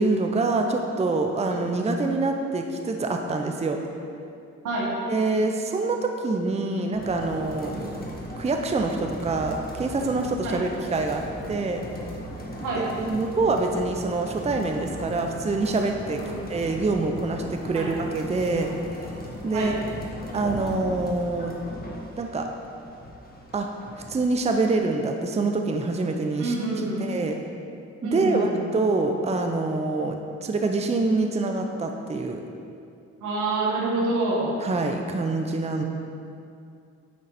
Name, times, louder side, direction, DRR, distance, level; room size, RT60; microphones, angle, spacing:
voice 1, 0.0-3.8 5.1-7.9 8.4-11.8 12.8-16.2 16.5-18.7 19.4-19.7 20.3-21.5 22.2-22.5 23.5-23.7 24.1-26.5 27.0-27.4 28.0-32.4 34.6-35.8, right 3 dB, 20° right, 4 dB, 0.6 m, -25 dB
sound 1, 6.9-24.8, equal, 30° left, 1.5 m, -38 dB
voice 2, 26.4-27.1 28.0-28.6 33.2-34.5, right 2 dB, 85° right, -4 dB, 2.0 m, -27 dB
9.5 x 3.9 x 5.8 m, 2.5 s
cardioid pair, 90°, 30 cm